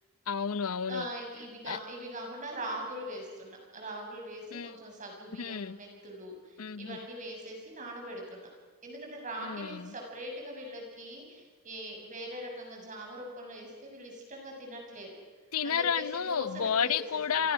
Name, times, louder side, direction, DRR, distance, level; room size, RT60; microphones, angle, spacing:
voice 1, 0.3-1.1 1.7-1.8 4.5-4.7 5.4-5.8 6.6-7.0 9.4-9.9 15.5-17.5, left 7 dB, 80° left, 17 dB, 0.7 m, -31 dB
voice 2, 0.9-8.5 8.8-15.1 15.6-17.2, equal, 35° right, 1 dB, 7.0 m, -41 dB
30.0 x 23.5 x 6.4 m, 1.4 s
head